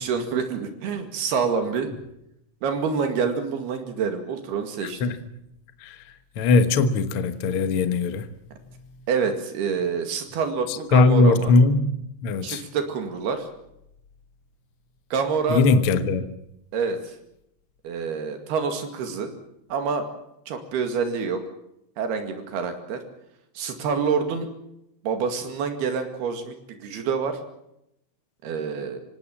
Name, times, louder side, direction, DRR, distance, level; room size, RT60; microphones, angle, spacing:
voice 1, 0.0-2.0 2.6-5.0 9.1-11.5 12.4-13.5 15.1-15.6 16.7-17.1 17.8-19.3 19.7-20.1 20.5-21.4 22.0-23.0 23.6-24.5 25.0-27.4 28.4-29.0, right 5 dB, 80° right, 4.1 m, -27 dB
voice 2, 4.8-5.2 5.8-6.0 6.4-8.3 10.9-11.9 12.2-12.6 15.5-16.3, left 3 dB, 65° left, 1.3 m, -20 dB
26.0 x 18.0 x 7.4 m
omnidirectional pair, 4.5 m